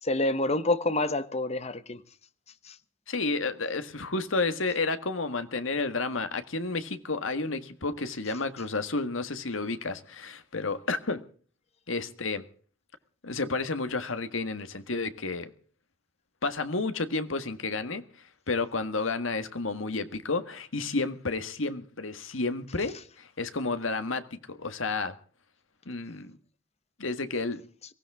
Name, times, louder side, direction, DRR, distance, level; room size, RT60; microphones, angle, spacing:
voice 1, 0.0-2.0 2.6-2.8, left 2 dB, 30° left, 1.1 m, -27 dB
voice 2, 3.1-11.2 11.9-12.4 13.2-15.5 16.4-18.0 18.5-25.2 25.9-26.4 27.0-27.6, left 3 dB, 80° left, 1.7 m, -31 dB
23.5 x 16.5 x 3.6 m
head